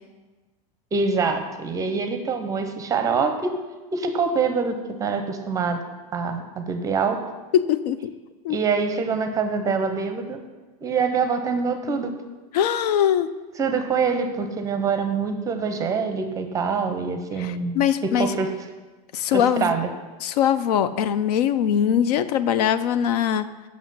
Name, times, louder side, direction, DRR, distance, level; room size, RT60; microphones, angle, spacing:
voice 1, 0.9-3.5 3.9-5.8 6.1-7.2 8.5-10.4 10.8-12.2 13.6-18.5 19.3-19.9, right 5 dB, 15° right, 6 dB, 0.6 m, -25 dB
voice 2, 7.5-8.1 8.4-8.6 12.5-13.3 17.4-18.4 19.1-19.7 20.2-23.7, left 9 dB, 75° left, 13 dB, 0.5 m, -22 dB
7.2 x 6.2 x 5.5 m, 1.2 s
supercardioid pair, 155°, 20 cm